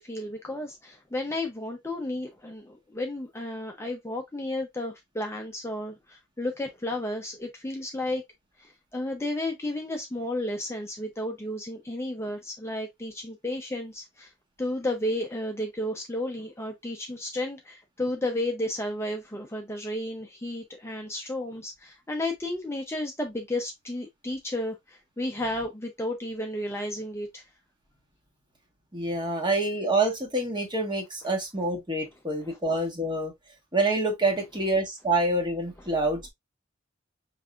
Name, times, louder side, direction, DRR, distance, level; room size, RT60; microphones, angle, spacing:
voice 1, 0.0-8.2 8.6-14.3 14.6-27.4 32.4-32.6, left 1 dB, 15° left, 0.6 m, -33 dB
voice 2, 28.9-33.3 33.7-36.3, right 2 dB, 25° right, 1.4 m, -27 dB
5.3 x 3.3 x 2.4 m
head